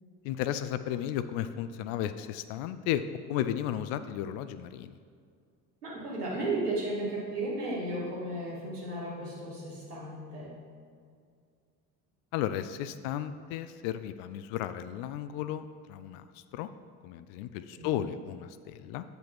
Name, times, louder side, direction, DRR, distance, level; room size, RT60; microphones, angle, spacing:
voice 1, 0.2-3.0 3.3-4.9 12.3-16.7 17.0-19.0, left 11 dB, 50° left, 12 dB, 0.4 m, -34 dB
voice 2, 5.8-10.6 17.7-18.1, right 2 dB, 80° right, -6 dB, 2.2 m, -34 dB
8.9 x 5.3 x 4.4 m, 2.2 s
figure-of-eight pair, 55°, 46 cm